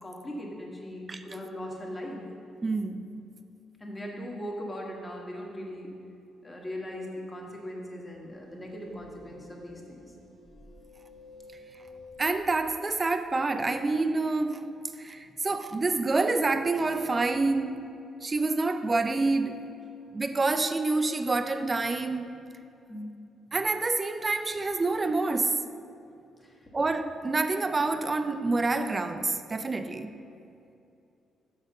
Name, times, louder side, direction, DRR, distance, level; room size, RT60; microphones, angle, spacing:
voice 1, 0.0-2.2 3.8-5.9 6.4-10.0 22.9-23.1 26.4-26.7, equal, 20° left, -1 dB, 1.5 m, -39 dB
voice 2, 2.6-3.1 12.2-14.7 15.0-17.9 18.2-19.7 20.1-22.4 23.5-25.6 26.7-30.1, right 3 dB, 25° right, 9 dB, 0.5 m, -27 dB
sound 1, 8.1-12.8, left 3 dB, 60° left, 1.4 m, -51 dB
6.3 x 5.0 x 6.5 m, 2.6 s
cardioid pair, 90°, 0 cm